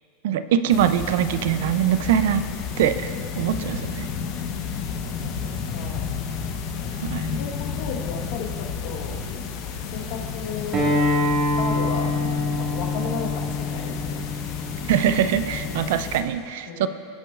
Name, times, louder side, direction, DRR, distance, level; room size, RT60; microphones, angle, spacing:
voice 1, 0.2-2.4 2.8-4.1 7.0-7.4 14.9-16.9, right 9 dB, 70° right, 12 dB, 0.4 m, -23 dB
sound 1, 0.7-16.2, left 6 dB, 45° left, 0.8 m, -31 dB
voice 2, 5.0-6.1 6.7-6.9 7.4-9.2 9.8-11.0 11.4-12.1 12.6-14.2 16.7-16.9, left 5 dB, 65° left, 2 dB, 1.1 m, -35 dB
Acoustic guitar, 10.7-15.9, left 2 dB, 30° right, 1.6 m, -26 dB
17.0 x 6.1 x 2.4 m, 2.4 s
supercardioid pair, 160°, 0 cm